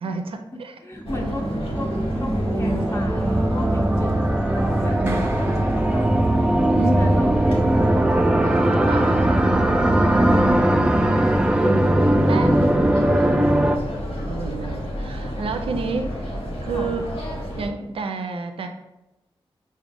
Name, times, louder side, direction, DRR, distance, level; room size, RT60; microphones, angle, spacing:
voice 1, 0.0-0.7 1.2-1.4 2.6-2.9 5.0-5.3 6.7-7.2 8.8-9.2 11.4-11.9 12.1-12.6 13.6-13.7 14.2-17.1 17.6-18.7, right 4 dB, 80° right, 6 dB, 0.4 m, -30 dB
voice 2, 0.8-1.5 1.7-1.9 2.2-6.2 6.9-7.5 12.2-13.6 16.7-16.9, left 1 dB, 30° left, 0 dB, 0.6 m, -35 dB
sound 1, 1.0-17.7, equal, 90° left, 0.9 m, -31 dB
sound 2, 1.0-13.8, right 1 dB, 10° right, 0.3 m, -20 dB
Clapping, 5.1-6.8, right 2 dB, 25° right, 0.7 m, -39 dB
4.8 x 2.1 x 3.5 m, 0.95 s
cardioid pair, 60°, 9 cm